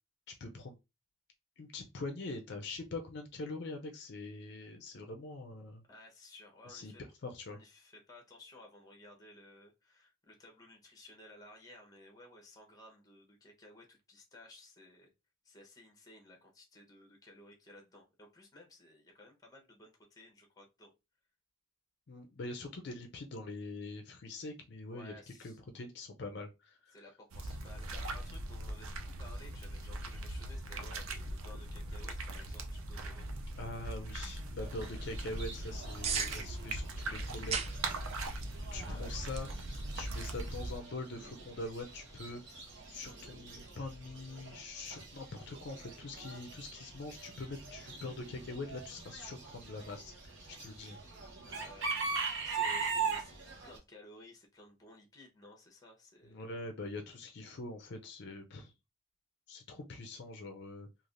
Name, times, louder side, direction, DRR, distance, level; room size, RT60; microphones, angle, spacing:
voice 1, 0.3-0.8 1.6-5.8 6.7-6.9 7.2-7.6 22.1-25.1 25.4-27.0 33.6-37.6 38.7-39.5 39.9-42.4 42.9-51.0 56.3-58.7 59.5-60.9, left 2 dB, 55° left, 5 dB, 0.4 m, -43 dB
voice 2, 5.9-7.0 7.5-15.1 15.4-20.9 24.9-25.6 26.9-33.3 38.7-39.1 51.4-53.4 53.6-56.5, left 1 dB, 20° left, 2 dB, 0.8 m, -56 dB
sound 1, 27.3-40.8, right 2 dB, 85° right, 0.5 m, -40 dB
sound 2, 33.1-43.7, right 6 dB, 30° right, 0.3 m, -45 dB
Chicken rooster / Bird, 34.6-53.8, right 5 dB, 60° right, 0.8 m, -42 dB
3.2 x 2.4 x 2.5 m, 0.25 s
head